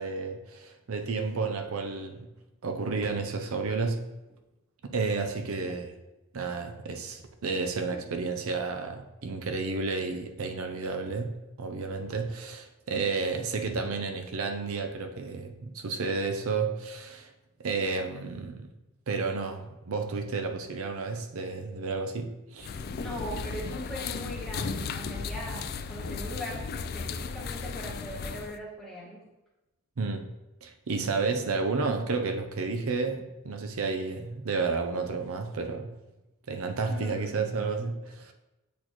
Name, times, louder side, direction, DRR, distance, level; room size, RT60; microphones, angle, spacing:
voice 1, 0.0-2.3 2.6-4.0 4.8-6.0 6.3-11.3 11.6-17.3 17.6-18.7 19.1-22.7 30.0-30.3 30.6-35.9 36.5-38.3, right 4 dB, 80° right, 5 dB, 0.6 m, -31 dB
sound 1, 22.6-28.6, left 5 dB, 45° left, 0.3 m, -35 dB
voice 2, 22.9-29.2 36.9-37.7, equal, ahead, -6 dB, 1.5 m, -40 dB
8.2 x 4.3 x 3.0 m, 1.0 s
head